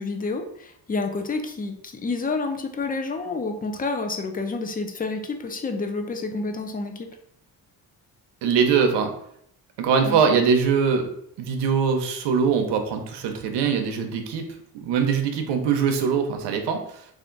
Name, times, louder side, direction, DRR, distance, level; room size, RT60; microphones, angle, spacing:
voice 1, 0.0-7.1 10.0-10.2, left 3 dB, 20° left, 5 dB, 0.5 m, -29 dB
voice 2, 8.4-9.1 9.8-11.1 11.4-14.5 14.7-17.1, right 6 dB, 85° right, 5 dB, 0.7 m, -22 dB
3.5 x 2.5 x 3.8 m, 0.70 s
cardioid pair, 105°, 41 cm